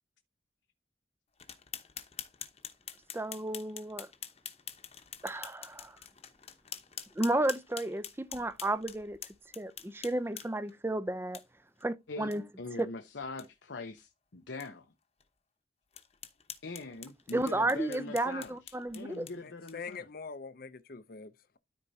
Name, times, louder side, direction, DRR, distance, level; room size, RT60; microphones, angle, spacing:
sound 1, 1.4-10.7 11.3-11.4 11.8-11.9 12.3-12.4 12.8-12.9 13.2-13.5 14.0-14.1 14.6-14.7 15.2-15.3 15.9-20.0, left 9 dB, 35° left, 0.9 m, -46 dB
voice 1, 3.1-4.1 5.2-6.0 7.2-9.2 9.6-11.4 11.8-12.4 12.8-12.9 17.3-19.3, right 1 dB, 15° right, 0.5 m, -32 dB
voice 2, 12.6-14.9 16.6-18.6 18.9-20.1, left 3 dB, 80° left, 0.8 m, -42 dB
voice 3, 19.4-21.6, left 5 dB, 55° left, 0.6 m, -44 dB
13.0 x 4.4 x 2.7 m
head